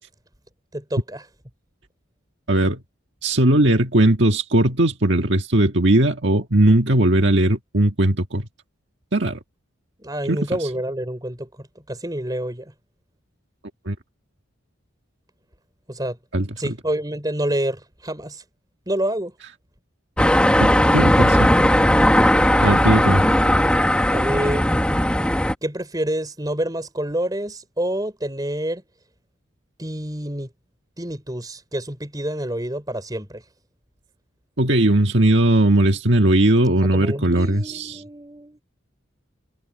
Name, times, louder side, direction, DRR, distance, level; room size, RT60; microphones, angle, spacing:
voice 1, 0.7-1.2 10.0-12.7 15.9-16.2 16.6-18.4 18.9-19.3 24.1-24.7 25.6-28.8 29.8-30.5 31.0-33.4 36.9-38.6, right 1 dB, 20° right, 5.2 m, -28 dB
voice 2, 2.5-2.8 3.2-8.5 9.1-9.4 10.3-10.4 13.8-13.9 16.3-16.7 20.9-21.5 22.6-23.2 34.6-38.0, right 1 dB, 60° right, 1.7 m, -18 dB
sound 1, 20.2-25.5, left 1 dB, 5° left, 1.5 m, -17 dB
head